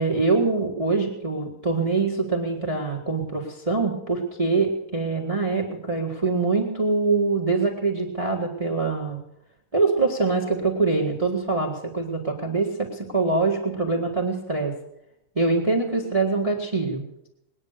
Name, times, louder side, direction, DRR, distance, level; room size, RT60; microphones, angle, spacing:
voice 1, 0.0-9.2 9.7-14.7 15.4-17.0, right 3 dB, 15° right, 0 dB, 1.8 m, -24 dB
20.5 x 9.8 x 6.7 m, 0.80 s
omnidirectional pair, 2.3 m